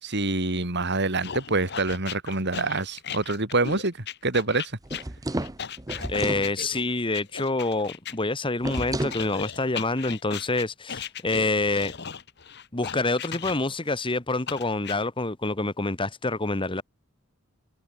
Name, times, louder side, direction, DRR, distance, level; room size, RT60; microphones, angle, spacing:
voice 1, 0.0-3.9 4.2-4.7, right 3 dB, 55° right, 3.9 m, -26 dB
sound 1, 1.2-8.1 8.7-13.9 14.5-15.0, left 7 dB, 50° left, 1.5 m, -37 dB
sound 2, 4.8-6.5 8.6-9.2, right 1 dB, 15° right, 0.8 m, -31 dB
voice 2, 6.1-11.9 12.7-16.8, left 2 dB, 25° left, 1.4 m, -27 dB
head